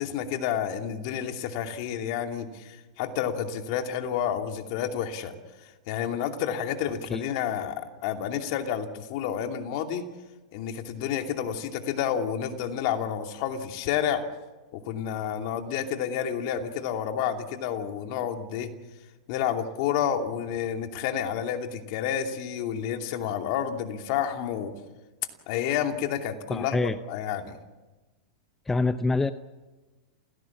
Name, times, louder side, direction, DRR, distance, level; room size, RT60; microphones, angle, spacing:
voice 1, 0.0-5.3 5.9-10.1 10.5-14.2 14.7-18.7 19.3-24.7 25.5-27.6, left 9 dB, 55° left, 5 dB, 2.7 m, -30 dB
voice 2, 26.5-27.0 28.7-29.3, left 3 dB, 10° left, 12 dB, 0.7 m, -25 dB
28.5 x 17.0 x 7.3 m, 1.2 s
hypercardioid pair, 115°, 3 cm